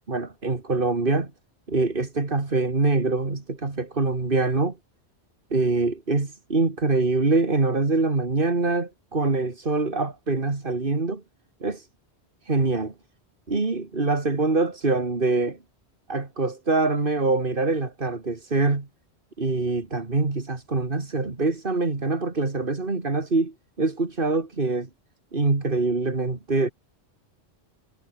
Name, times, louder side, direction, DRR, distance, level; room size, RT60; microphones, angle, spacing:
voice 1, 0.1-1.3 1.7-4.8 5.5-11.2 11.6-11.9 12.4-12.9 13.5-15.6 16.1-18.9 19.4-24.9 25.3-26.7, right 3 dB, 55° right, 2.7 m, -24 dB
omnidirectional pair, 1.1 m